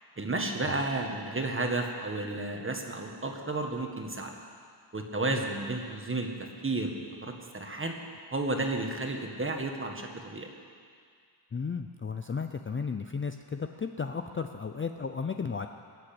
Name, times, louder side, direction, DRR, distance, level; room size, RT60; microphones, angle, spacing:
voice 1, 0.2-4.3 4.9-7.9 8.3-10.5, right 2 dB, 25° right, 2 dB, 1.7 m, -32 dB
voice 2, 11.5-15.7, left 5 dB, 30° left, 6 dB, 0.5 m, -34 dB
21.0 x 7.9 x 8.7 m, 2.1 s
wide cardioid pair, 135°, 46 cm